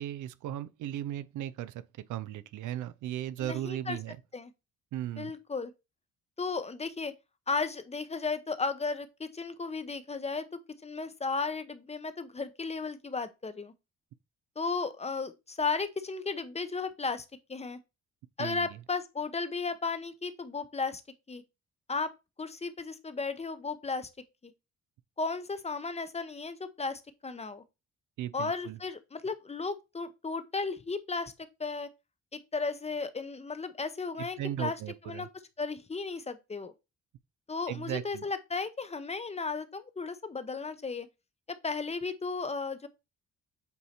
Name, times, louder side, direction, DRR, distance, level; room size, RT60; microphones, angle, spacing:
voice 1, 0.0-1.8 2.1-4.2 4.9-5.3 18.4-18.7 28.2-28.8 34.2-35.3 37.7-38.2, right 12 dB, 80° right, 0.5 m, -36 dB
voice 2, 3.4-4.0 4.3-4.5 5.2-5.7 6.4-7.1 7.5-10.5 10.8-13.7 14.6-17.8 18.4-21.0 21.3-21.4 21.9-22.1 22.4-24.1 24.4-24.5 25.2-27.6 28.3-31.3 31.6-31.9 32.3-34.8 35.0-35.3 35.6-36.7 37.5-41.1 41.6-42.9, left 4 dB, 20° left, 0.7 m, -34 dB
8.1 x 2.7 x 4.3 m
cardioid pair, 90°, 30 cm